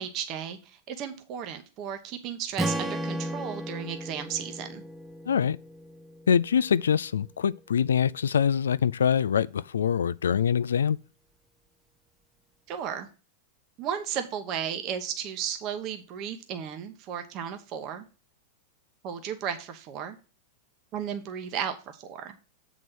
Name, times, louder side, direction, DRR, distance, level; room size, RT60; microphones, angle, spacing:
voice 1, 0.0-4.8 12.7-13.1 13.8-18.0 19.0-20.2 20.9-22.3, right 8 dB, 45° right, 1.0 m, -34 dB
Strum, 2.6-6.8, right 1 dB, 10° right, 0.6 m, -35 dB
voice 2, 5.3-5.6 6.3-11.0, left 7 dB, 80° left, 0.3 m, -24 dB
7.5 x 4.1 x 6.2 m
hypercardioid pair, 100°, 0 cm